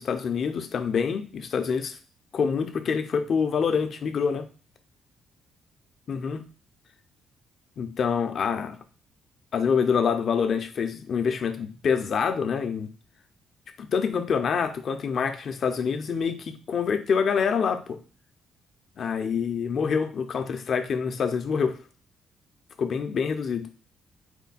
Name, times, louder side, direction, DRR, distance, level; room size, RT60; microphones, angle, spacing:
voice 1, 0.0-2.0 2.3-4.5 6.1-6.5 7.8-8.8 9.5-12.9 13.8-18.0 19.0-21.8 22.8-23.7, left 6 dB, 55° left, 7 dB, 0.6 m, -26 dB
4.4 x 2.2 x 4.0 m, 0.36 s
cardioid pair, 90°, 0 cm